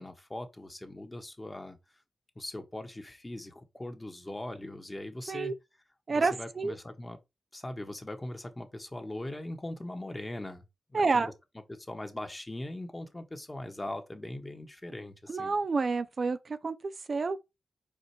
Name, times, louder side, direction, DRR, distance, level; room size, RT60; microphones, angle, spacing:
voice 1, 0.0-1.8 2.3-5.6 6.1-7.2 7.5-11.3 11.7-15.5, left 1 dB, 20° left, 1.5 m, -40 dB
voice 2, 6.1-6.8 10.9-11.3 15.3-17.4, right 4 dB, 55° right, 0.6 m, -29 dB
5.1 x 4.4 x 4.4 m
cardioid pair, 60°, 0 cm